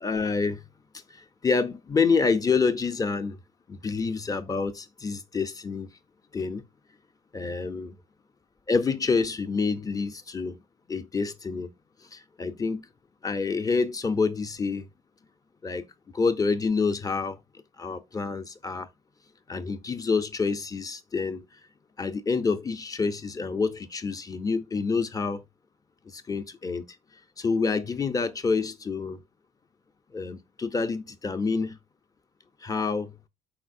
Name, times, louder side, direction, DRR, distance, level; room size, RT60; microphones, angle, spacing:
voice 1, 0.0-0.6 1.4-3.4 3.7-5.9 6.3-6.6 7.3-7.9 8.7-10.6 10.9-11.7 12.1-12.9 13.2-14.9 15.6-15.8 16.1-17.4 17.8-18.9 19.5-21.4 22.0-25.4 26.1-26.8 27.4-29.2 30.1-31.8 32.6-33.1, left 4 dB, 20° left, 0.5 m, -27 dB
4.3 x 4.1 x 2.5 m
cardioid pair, 110°, 17 cm